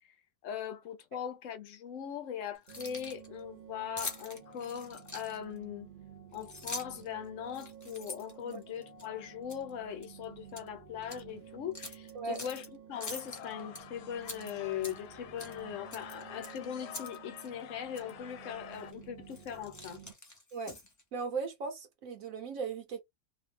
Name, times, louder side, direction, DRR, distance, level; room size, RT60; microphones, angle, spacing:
voice 1, 0.4-5.9 6.3-20.0, left 9 dB, 65° left, 0.9 m, -40 dB
Keys jangling, 2.6-3.3 4.0-5.6 6.3-7.1 7.5-9.1 9.5-9.7 10.0-10.7 11.0-11.2 11.7-12.7 13.0-13.8 14.2-15.1 15.4-15.6 15.9-17.2 17.4-17.5 17.9-18.1 18.7-18.9 19.3-21.0, left 2 dB, 30° left, 0.3 m, -44 dB
sound 1, 2.7-20.1, right 7 dB, 45° right, 0.6 m, -52 dB
sound 2, 12.9-18.9, left 10 dB, 80° left, 1.1 m, -49 dB
voice 2, 21.1-23.0, right 5 dB, 70° right, 1.0 m, -37 dB
2.8 x 2.1 x 3.1 m
omnidirectional pair, 1.6 m